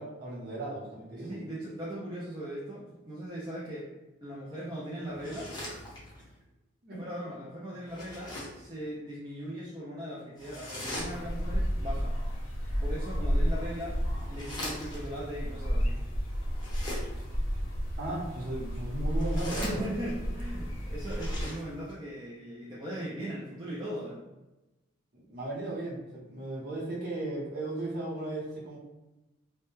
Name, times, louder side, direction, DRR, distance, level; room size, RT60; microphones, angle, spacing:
voice 1, 0.0-1.4 6.8-7.0 18.0-19.9 25.1-28.8, right 2 dB, 50° right, -6 dB, 0.8 m, -36 dB
voice 2, 1.2-3.9 4.2-5.5 7.0-12.1 12.8-14.0 14.3-16.0 19.5-24.2, equal, 20° right, -7 dB, 0.4 m, -39 dB
sound 1, 5.1-6.3 7.8-8.7 10.4-11.5 13.3-15.2 16.5-17.4 19.0-20.3 20.9-22.0, left 1 dB, 20° left, 0.7 m, -42 dB
sound 2, 11.0-21.4, equal, 70° left, 0.6 m, -32 dB
2.1 x 2.1 x 3.0 m, 1.0 s
head